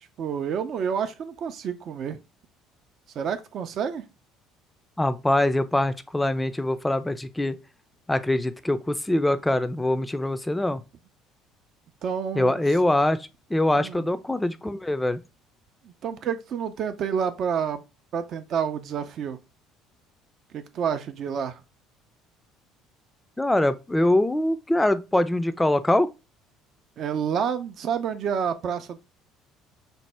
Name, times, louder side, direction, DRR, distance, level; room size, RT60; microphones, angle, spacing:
voice 1, 0.2-2.2 3.2-4.0 12.0-12.6 13.8-14.1 15.8-17.8 18.1-19.4 20.5-21.6 27.0-29.0, right 7 dB, 55° right, 0.4 m, -29 dB
voice 2, 5.0-7.6 8.1-10.8 12.3-13.2 13.5-15.2 23.4-26.1, left 1 dB, 10° left, 0.4 m, -23 dB
4.2 x 2.0 x 3.3 m
hypercardioid pair, 60°, 0 cm